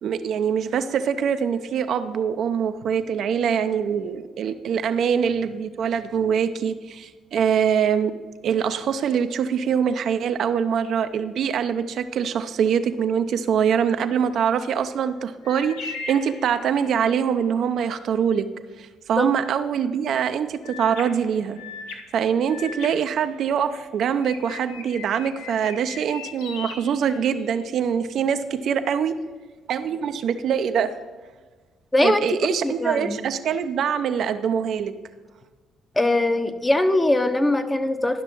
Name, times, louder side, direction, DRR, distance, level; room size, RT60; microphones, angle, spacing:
voice 1, 0.0-8.1 8.4-18.5 18.8-21.6 22.1-29.1 29.7-31.0 32.0-34.9, right 7 dB, 65° right, 9 dB, 0.5 m, -24 dB
sound 1, 15.4-17.1 20.6-23.8 24.2-27.7, left 4 dB, 85° left, 0.9 m, -39 dB
voice 2, 32.6-33.2 35.9-38.2, left 1 dB, 20° left, 8 dB, 0.9 m, -21 dB
11.5 x 6.0 x 4.5 m, 1.4 s
hypercardioid pair, 55°, 0 cm